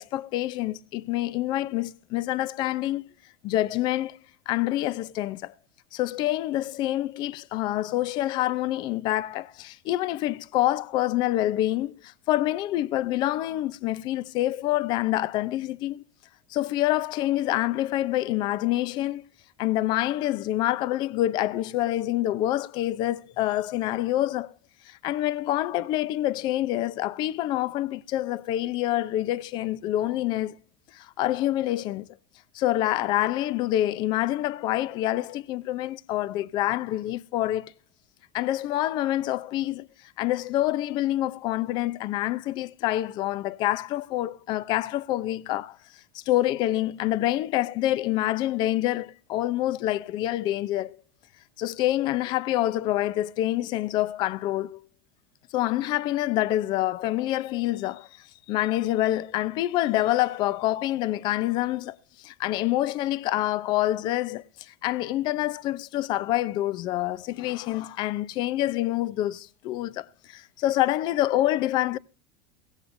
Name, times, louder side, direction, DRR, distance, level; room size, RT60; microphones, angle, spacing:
voice 1, 0.0-3.0 3.4-4.2 4.5-5.5 5.9-16.0 16.5-19.2 19.6-24.5 24.9-30.5 30.9-32.1 32.5-37.7 38.3-39.9 40.2-45.8 46.1-51.0 51.6-54.8 55.5-58.1 58.5-72.0, left 14 dB, 40° left, 0.6 m, -27 dB
16.5 x 16.5 x 2.6 m
supercardioid pair, 155°, 11 cm